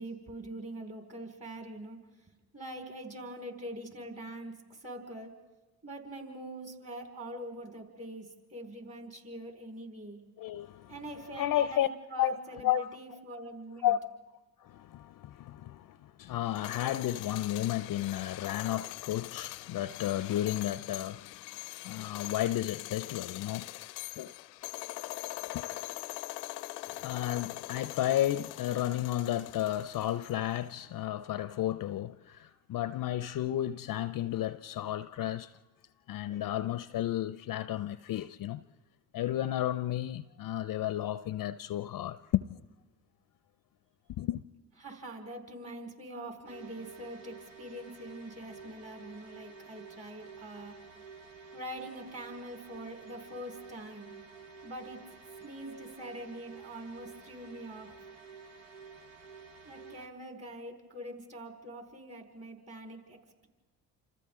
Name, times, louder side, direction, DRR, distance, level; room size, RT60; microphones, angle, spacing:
voice 1, 0.0-2.0 2.5-5.3 5.8-10.2 10.9-13.9 44.8-50.8 51.5-54.1 54.6-55.0 55.4-57.9 59.6-63.2, right 1 dB, 30° right, 4.7 m, -44 dB
voice 2, 10.4-11.0 11.4-11.9 12.2-12.4 12.6-12.9 13.8-23.7 24.2-24.3 25.5-25.7 26.9-35.5 36.1-38.6 39.1-42.6 44.1-44.4, left 12 dB, 45° left, 0.6 m, -33 dB
sound 1, 16.4-30.6, left 18 dB, 85° left, 0.6 m, -42 dB
sound 2, 46.5-60.1, right 5 dB, 70° right, 1.5 m, -51 dB
28.0 x 27.5 x 3.7 m
hypercardioid pair, 55°, 47 cm